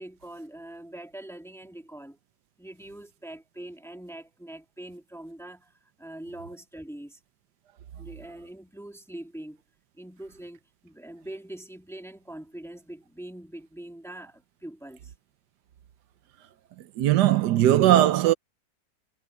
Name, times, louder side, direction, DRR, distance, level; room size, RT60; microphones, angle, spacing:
voice 1, 0.0-2.2 2.6-7.2 7.9-9.6 10.0-15.1, right 1 dB, ahead, 1.6 m, -43 dB
voice 2, 16.8-18.3, right 13 dB, 85° right, 1.4 m, -19 dB
omnidirectional pair, 1.8 m